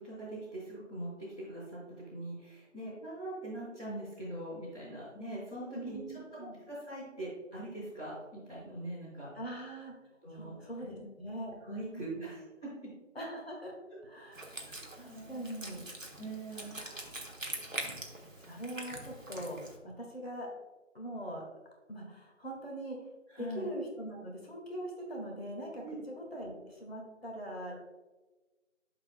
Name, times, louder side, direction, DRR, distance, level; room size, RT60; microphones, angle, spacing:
voice 1, 0.0-6.0 6.3-9.3 10.2-10.5 10.8-11.0 11.6-12.7 14.2-14.3 14.5-15.6 16.2-16.8 23.3-23.7 25.8-26.0, right 1 dB, 5° left, -20 dB, 1.3 m, -42 dB
voice 2, 5.7-6.6 9.4-9.9 10.3-12.3 13.2-13.7 14.0-14.6 15.0-15.8 16.5-17.1 18.4-20.5 20.9-21.4 21.9-23.0 23.4-27.7, right 1 dB, 50° left, -1 dB, 1.9 m, -42 dB
Wind instrument woodwind instrument, 14.3-19.8, right 1 dB, 85° right, 1.4 m, -43 dB
11.5 x 4.8 x 2.2 m, 1.2 s
figure-of-eight pair, 165°, 38 cm